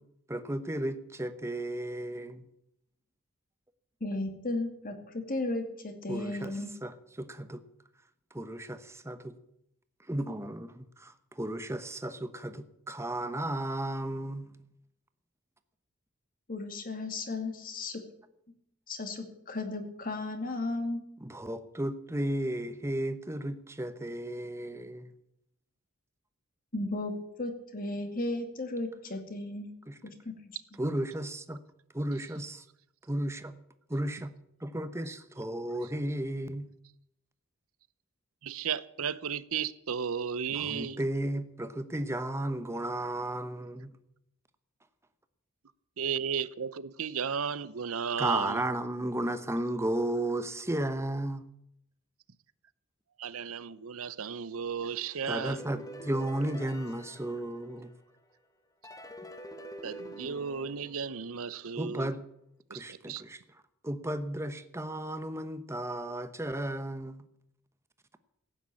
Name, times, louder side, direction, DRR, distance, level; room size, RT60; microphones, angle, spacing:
voice 1, 0.3-2.4 6.1-6.5 6.8-7.6 8.3-9.3 10.1-14.5 21.2-25.1 29.9-30.0 30.8-31.6 31.9-32.6 33.1-33.5 33.9-34.3 34.6-36.7 40.5-43.9 48.2-51.4 55.3-57.9 61.8-62.2 62.7-63.4 63.8-67.2, right 1 dB, 15° right, 1.0 m, -34 dB
voice 2, 4.0-6.7 16.5-18.0 18.9-21.0 26.7-27.1 27.4-29.7 30.0-30.6, left 2 dB, 40° left, 2.3 m, -35 dB
voice 3, 38.4-41.0 46.0-48.6 53.2-55.6 59.8-62.1 62.7-63.2, right 6 dB, 80° right, 0.7 m, -34 dB
sound 1, 55.3-58.2 58.8-61.7, right 1 dB, 15° left, 1.2 m, -46 dB
15.5 x 9.2 x 8.5 m
head